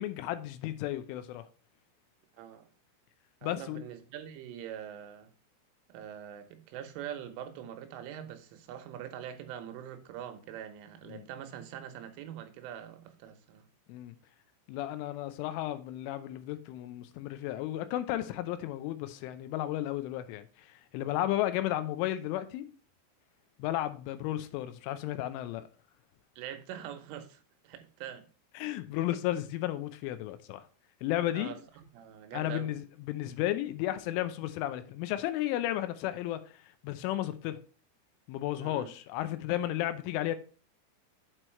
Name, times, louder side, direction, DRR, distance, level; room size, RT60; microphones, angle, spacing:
voice 1, 0.0-1.5 3.4-3.8 11.1-11.2 13.9-14.2 14.7-22.7 23.6-25.6 28.6-30.6 31.0-31.5 32.3-36.4 36.8-37.6 38.3-40.4, left 14 dB, 85° left, 3.1 m, -33 dB
voice 2, 2.4-2.7 3.4-5.3 5.9-13.7 26.4-28.3 31.3-32.7 38.6-38.9, right 10 dB, 85° right, 3.4 m, -43 dB
8.1 x 4.6 x 4.4 m
omnidirectional pair, 5.6 m